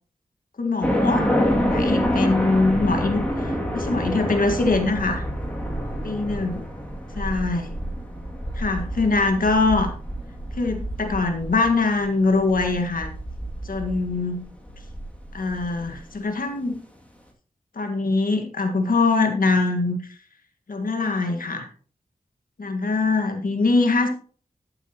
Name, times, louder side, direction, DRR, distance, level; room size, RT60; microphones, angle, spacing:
voice 1, 0.6-1.3 1.7-5.2 6.0-6.6 7.2-7.8 8.5-9.9 10.5-13.1 13.6-14.5 15.3-16.8 17.7-20.0 20.7-21.7 22.6-24.1, left 3 dB, 75° left, 4 dB, 1.8 m, -23 dB
sound 1, 0.8-16.0, equal, 10° left, 2.5 m, -27 dB
12.5 x 8.0 x 3.0 m, 0.44 s
wide cardioid pair, 70°, 15 cm